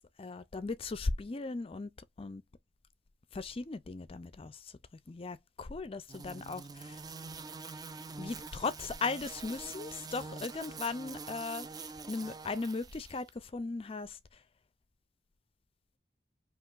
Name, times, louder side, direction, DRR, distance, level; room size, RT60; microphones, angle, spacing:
voice 1, 0.2-1.9 2.2-2.4 3.3-4.7 5.1-7.0 8.2-11.7 12.1-14.4, left 3 dB, 35° left, 0.5 m, -37 dB
sound 1, 6.1-13.2, right 4 dB, 20° right, 0.5 m, -45 dB
5.7 x 2.9 x 2.5 m
head